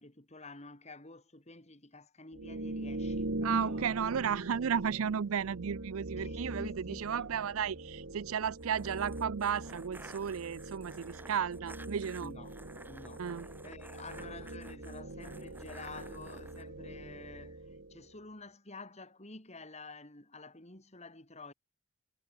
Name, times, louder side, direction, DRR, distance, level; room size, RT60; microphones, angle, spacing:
voice 1, 0.0-4.0 6.2-7.3 12.0-12.6 12.8-13.3 13.6-21.5, left 3 dB, 30° left, 3.7 m, -50 dB
sound 1, 2.3-18.1, right 2 dB, 60° right, 1.8 m, -42 dB
voice 2, 3.4-12.3 13.2-13.5, right 7 dB, 80° right, 0.5 m, -34 dB
sound 2, 8.5-16.6, right 2 dB, 10° right, 5.9 m, -53 dB
head